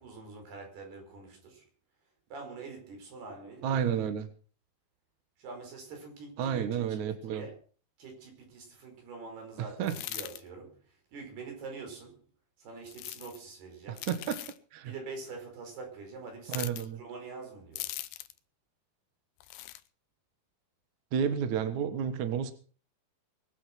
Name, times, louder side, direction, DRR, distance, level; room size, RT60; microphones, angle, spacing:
voice 1, 0.0-1.7 2.3-4.0 5.4-7.0 7.3-7.6 8.0-12.3 12.6-14.1 14.8-17.9, right 4 dB, 90° right, 6.9 m, -45 dB
voice 2, 3.6-4.3 6.4-7.5 9.8-9.9 13.9-14.4 14.7-14.9 16.5-17.0 21.1-22.5, right 8 dB, 60° right, 2.4 m, -31 dB
sound 1, 9.8-10.4 12.9-13.4 14.0-14.6 16.5-16.9 17.8-18.4 19.4-19.8, left 15 dB, 90° left, 2.8 m, -40 dB
22.5 x 8.3 x 6.1 m
omnidirectional pair, 4.4 m